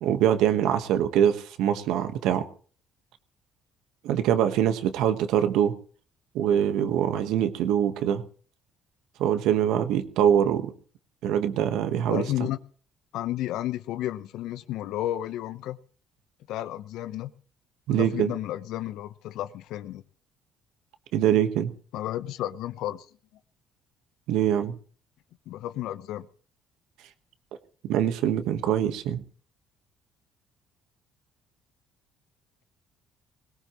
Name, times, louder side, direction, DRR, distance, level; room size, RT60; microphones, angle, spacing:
voice 1, 0.0-2.5 4.0-5.7 6.3-8.2 9.2-10.7 11.2-12.2 17.9-18.3 21.1-21.7 24.3-24.8 27.8-29.2, right 10 dB, 75° right, 1.3 m, -23 dB
voice 2, 12.1-12.6 13.1-15.8 16.5-17.3 18.0-20.0 21.9-23.1 25.5-26.3, left 13 dB, 75° left, 0.8 m, -32 dB
21.0 x 17.5 x 3.1 m
supercardioid pair, 65°, 0 cm